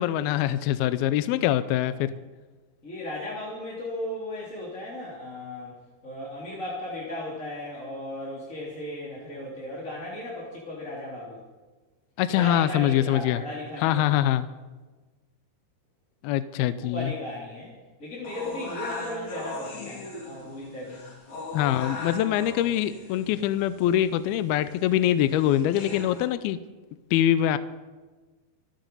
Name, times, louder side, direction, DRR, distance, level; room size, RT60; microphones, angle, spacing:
voice 1, 0.0-2.1 12.2-13.4 13.8-14.5 16.2-17.1 21.5-26.6 27.1-27.6, left 12 dB, 80° left, 13 dB, 2.3 m, -24 dB
voice 2, 1.8-2.2 2.8-11.4 12.3-14.2 16.8-21.0, left 1 dB, 20° left, -6 dB, 3.0 m, -36 dB
sound 1, 18.2-26.3, left 2 dB, 45° left, 4.0 m, -39 dB
26.5 x 9.1 x 5.5 m, 1.3 s
omnidirectional pair, 4.8 m